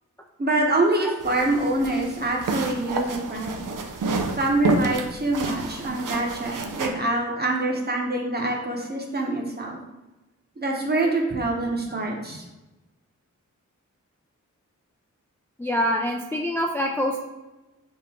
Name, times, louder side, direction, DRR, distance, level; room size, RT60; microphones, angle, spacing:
voice 1, 0.4-3.6 4.4-9.8 10.6-12.4, right 2 dB, 30° right, 0 dB, 0.9 m, -25 dB
sound 1, 1.2-6.9, right 3 dB, 85° right, 0.5 m, -29 dB
voice 2, 15.6-17.2, equal, 10° left, 0 dB, 0.4 m, -25 dB
3.7 x 2.5 x 4.2 m, 1.1 s
wide cardioid pair, 60°, 31 cm